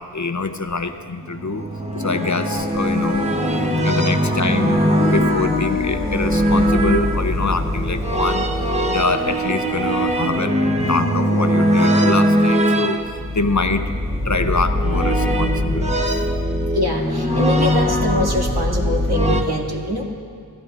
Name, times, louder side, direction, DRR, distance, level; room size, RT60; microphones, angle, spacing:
voice 1, 0.0-1.6 2.0-3.3 3.8-8.5 8.9-13.0 13.3-13.8 14.2-16.2, left 3 dB, 45° left, 8 dB, 0.8 m, -24 dB
sound 1, 1.2-19.4, equal, 15° right, 1.1 m, -20 dB
sound 2, 1.9-3.9 4.9-6.9 10.7-12.9, left 6 dB, 85° left, 0.7 m, -30 dB
sound 3, 2.5-10.4, right 1 dB, 40° right, 2.3 m, -38 dB
voice 2, 16.7-20.0, left 1 dB, 65° right, -2 dB, 2.5 m, -23 dB
28.5 x 13.5 x 2.6 m, 2.3 s
wide cardioid pair, 45°, 42 cm